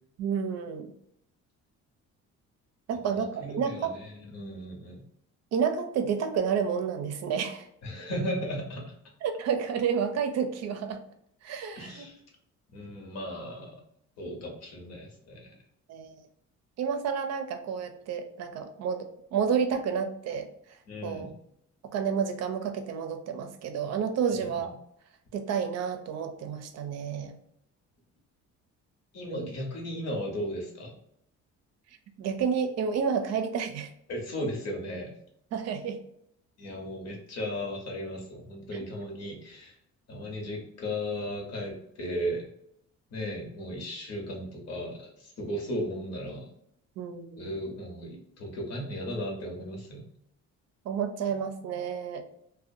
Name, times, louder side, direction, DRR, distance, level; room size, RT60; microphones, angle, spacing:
voice 1, 0.2-0.9 2.9-3.9 5.5-7.7 9.2-11.0 11.4-12.1 15.9-16.2 16.8-21.3 21.8-24.7 25.3-27.4 29.3-29.5 32.2-33.9 35.5-36.0 38.7-38.8 47.0-47.5 50.8-52.2, right 6 dB, 60° right, 7 dB, 0.5 m, -30 dB
voice 2, 3.1-5.1 7.8-8.9 11.7-12.2 12.7-13.8 14.2-15.6 20.9-21.3 24.4-24.7 29.1-30.9 34.1-35.2 36.6-39.8 40.1-42.5 43.1-46.5 47.4-50.0, equal, 60° left, 0 dB, 1.0 m, -36 dB
2.4 x 2.2 x 2.6 m, 0.72 s
cardioid pair, 150°, 30 cm